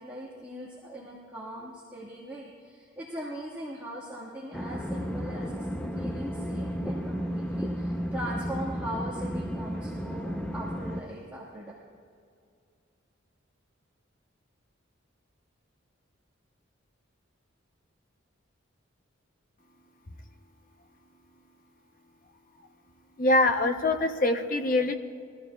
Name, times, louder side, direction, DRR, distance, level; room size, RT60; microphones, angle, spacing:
voice 1, 0.0-5.5 5.9-11.7, equal, 10° right, -8 dB, 1.5 m, -40 dB
sound 1, 4.5-11.0, equal, 5° left, 0.6 m, -33 dB
voice 2, 23.2-24.9, left 2 dB, 45° left, 6 dB, 0.7 m, -24 dB
21.5 x 14.0 x 2.3 m, 2.3 s
head